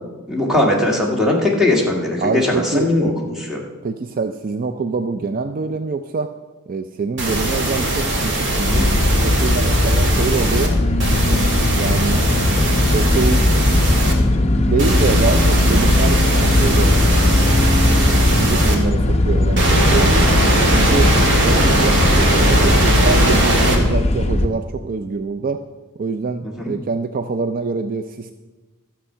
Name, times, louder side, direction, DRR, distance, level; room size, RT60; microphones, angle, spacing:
voice 1, 0.3-3.6 11.5-11.6 26.4-26.7, left 2 dB, ahead, -2 dB, 1.9 m, -19 dB
voice 2, 2.2-2.9 3.8-6.3 6.7-9.0 9.2-10.7 11.2-12.3 12.9-13.4 14.6-17.0 17.3-17.8 18.4-20.3 20.7-21.1 21.4-25.6 26.0-28.3, right 4 dB, 40° right, 8 dB, 0.4 m, -25 dB
sound 1, 7.2-10.7 11.0-14.1 14.8-18.7 19.6-23.8, right 1 dB, 55° right, 2.1 m, -19 dB
sound 2, 8.7-24.5, left 1 dB, 30° left, 0.8 m, -18 dB
12.5 x 7.3 x 5.6 m, 1.2 s
head